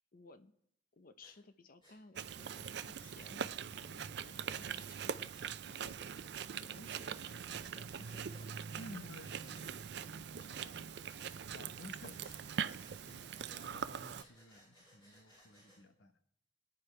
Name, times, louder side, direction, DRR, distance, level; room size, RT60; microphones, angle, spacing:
voice 1, 0.1-0.5 0.9-6.0 6.4-8.5, left 3 dB, 50° left, 11 dB, 0.8 m, -58 dB
Breathing, 1.2-1.4 1.8-2.0 3.2-3.3 5.2-5.5 6.8-7.4 8.0-8.7 9.1-9.7 11.0-11.4 12.0-15.8, equal, 30° left, 6.8 m, -64 dB
Chewing mastication, 2.1-14.2, right 7 dB, 65° right, 0.5 m, -42 dB
voice 2, 8.8-11.0 11.5-16.2, left 2 dB, 85° left, 8 dB, 1.1 m, -55 dB
23.5 x 9.6 x 3.3 m, 0.72 s
head